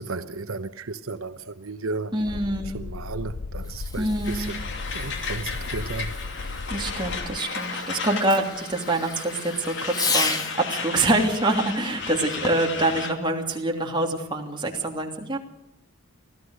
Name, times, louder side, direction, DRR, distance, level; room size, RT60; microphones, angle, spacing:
voice 1, 0.0-2.4 2.7-4.6 4.9-6.5, right 3 dB, 75° right, 0.9 m, -34 dB
voice 2, 2.1-2.8 4.0-4.5 6.7-15.4, right 2 dB, 20° right, 2.9 m, -25 dB
sound 1, 2.3-7.4, left 3 dB, 85° left, 0.7 m, -35 dB
Fireworks, 3.6-10.7 12.3-12.8, left 3 dB, 15° left, 1.4 m, -34 dB
Truck, 4.2-13.1, left 5 dB, 55° left, 2.5 m, -34 dB
25.0 x 16.0 x 6.5 m
head